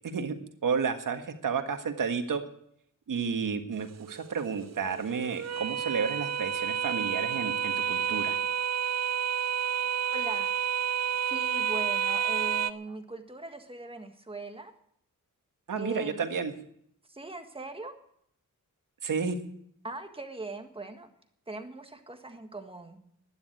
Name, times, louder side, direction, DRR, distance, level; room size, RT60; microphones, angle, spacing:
voice 1, 0.0-0.4 0.6-2.4 3.1-8.4 15.7-16.5 19.0-19.4, right 6 dB, 65° right, 7 dB, 1.7 m, -31 dB
sound 1, 3.7-12.7, right 8 dB, 50° right, 0.5 m, -30 dB
voice 2, 9.8-10.5 11.3-14.7 15.8-16.3 17.1-17.9 19.8-21.1 21.5-23.0, right 2 dB, 15° right, 6 dB, 1.6 m, -40 dB
12.0 x 10.5 x 9.1 m, 0.70 s
wide cardioid pair, 140°, 34 cm